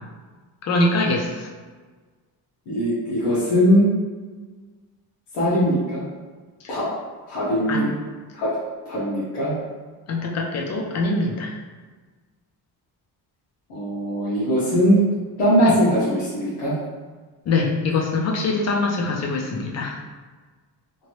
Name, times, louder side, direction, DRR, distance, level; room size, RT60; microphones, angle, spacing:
voice 1, 0.6-1.5 7.7-8.0 10.1-11.5 15.6-15.8 17.5-20.0, left 3 dB, 40° left, 0 dB, 0.5 m, -23 dB
voice 2, 2.7-3.9 5.3-6.0 6.7-6.9 7.3-7.9 8.3-8.5 8.9-9.6 13.7-15.0 15.4-16.7, equal, 85° left, -9 dB, 1.1 m, -20 dB
2.9 x 2.5 x 3.1 m, 1.4 s
cardioid pair, 175°, 41 cm